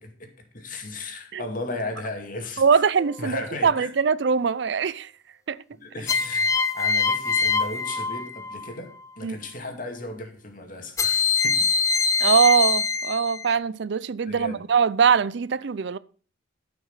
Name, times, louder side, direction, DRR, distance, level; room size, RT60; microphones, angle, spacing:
voice 1, 0.0-2.8 3.2-3.9 5.7-11.7 14.2-14.6, left 2 dB, 45° left, 2.3 m, -36 dB
voice 2, 2.6-5.1 5.5-5.6 9.2-9.4 12.2-16.0, right 6 dB, 60° right, 0.4 m, -22 dB
sound 1, 3.0-3.5 6.1-8.7 11.0-13.5, left 5 dB, 15° left, 0.5 m, -24 dB
13.5 x 6.1 x 5.6 m
head